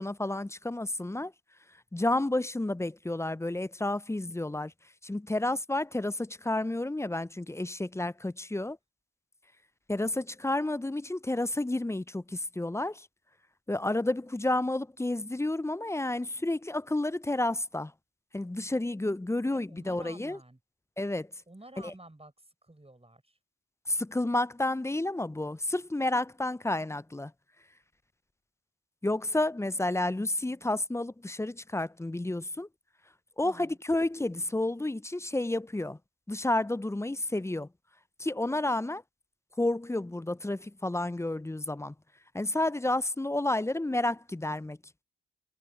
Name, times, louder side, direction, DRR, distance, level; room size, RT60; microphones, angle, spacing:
voice 1, 0.0-1.3 1.9-4.7 5.0-8.8 9.9-13.1 13.7-17.9 18.3-20.4 21.0-21.3 21.8-21.9 23.9-27.3 29.0-32.7 33.4-36.0 36.3-37.7 38.2-39.0 39.6-41.9 42.3-44.8, left 2 dB, 10° left, 0.5 m, -30 dB
voice 2, 19.5-20.6 21.5-22.3 22.6-23.4 33.4-33.8, right 2 dB, 15° right, 7.4 m, -51 dB
supercardioid pair, 50°, 34 cm